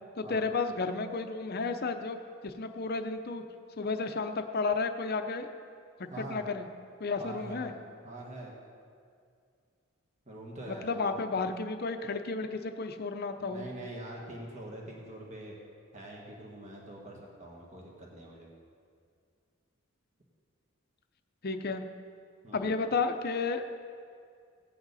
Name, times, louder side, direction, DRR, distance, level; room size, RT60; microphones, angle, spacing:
voice 1, 0.2-2.2 2.4-3.4 3.8-5.5 6.0-6.6 7.0-7.7 10.7-13.7 21.4-21.8 22.5-23.6, left 4 dB, 50° left, 7 dB, 0.7 m, -32 dB
voice 2, 6.1-6.4 7.2-7.7 8.0-8.5 10.3-11.0 13.4-15.5 15.9-18.5 22.4-22.7, right 1 dB, 35° right, -2 dB, 1.7 m, -44 dB
17.0 x 8.9 x 4.1 m, 2.3 s
head